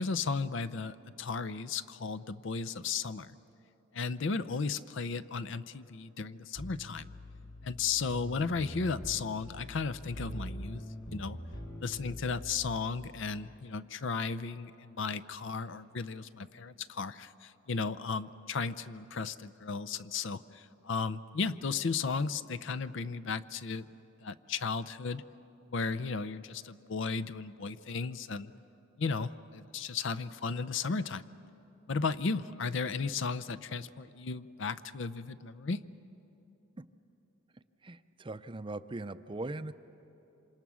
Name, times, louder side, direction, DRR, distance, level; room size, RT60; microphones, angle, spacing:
voice 1, 0.0-3.4 3.9-7.1 7.6-10.8 11.1-11.4 11.8-23.9 24.2-25.2 25.7-28.5 29.0-31.3 31.9-35.8, left 4 dB, 65° left, 15 dB, 0.6 m, -35 dB
sound 1, 6.6-13.0, equal, 90° left, 4.4 m, -44 dB
voice 2, 37.8-39.7, right 2 dB, 25° right, 12 dB, 0.5 m, -40 dB
27.5 x 26.0 x 6.2 m, 2.9 s
head